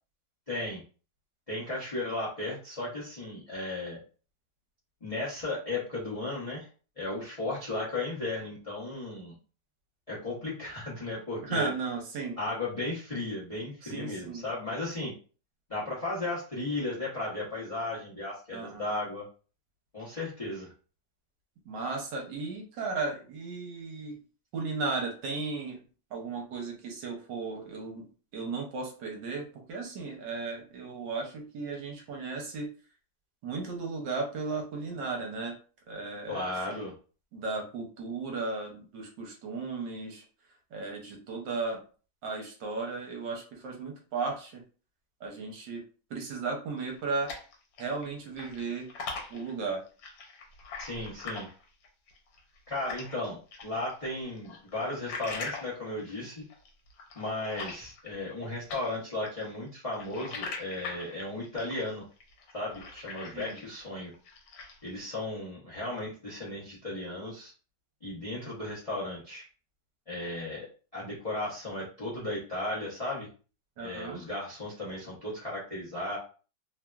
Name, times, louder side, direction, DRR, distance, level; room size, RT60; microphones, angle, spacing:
voice 1, 0.5-0.8 1.5-4.0 5.0-6.7 7.0-9.4 10.1-11.7 12.4-15.1 15.7-19.2 19.9-20.7 36.3-36.9 50.8-51.5 52.7-56.4 57.1-62.0 62.5-64.1 64.8-67.5 68.0-69.4 70.1-70.7 70.9-73.3 73.8-76.2, left 2 dB, 60° left, -6 dB, 0.3 m, -35 dB
voice 2, 11.4-12.4 13.8-14.4 18.5-18.9 21.6-24.2 24.5-25.8 26.1-32.7 33.4-35.5 35.9-36.8 37.3-40.2 40.7-41.8 42.2-44.6 45.2-45.8 46.1-47.3 47.8-48.9 49.3-49.8 63.3-63.6 73.8-74.2, right 4 dB, 70° right, 1 dB, 1.4 m, -35 dB
sound 1, 46.8-48.1 48.3-53.2 53.5-58.4 58.7-63.8 64.1-64.9, left 4 dB, 75° left, 1.4 m, -42 dB
3.2 x 2.4 x 2.3 m, 0.38 s
omnidirectional pair, 2.1 m